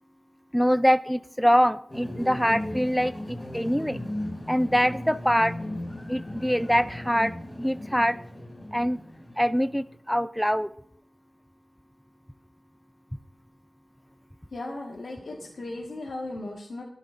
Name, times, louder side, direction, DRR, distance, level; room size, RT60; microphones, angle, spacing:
voice 1, 0.5-4.0 4.5-5.5 6.1-8.2 8.7-9.0 9.4-10.7, equal, 5° left, 13 dB, 0.4 m, -24 dB
sound 1, 1.9-10.0, left 1 dB, 30° left, 6.0 m, -37 dB
voice 2, 14.5-16.8, left 2 dB, 80° left, -1 dB, 1.6 m, -36 dB
24.5 x 10.5 x 2.6 m, 0.70 s
wide cardioid pair, 50°, 0 cm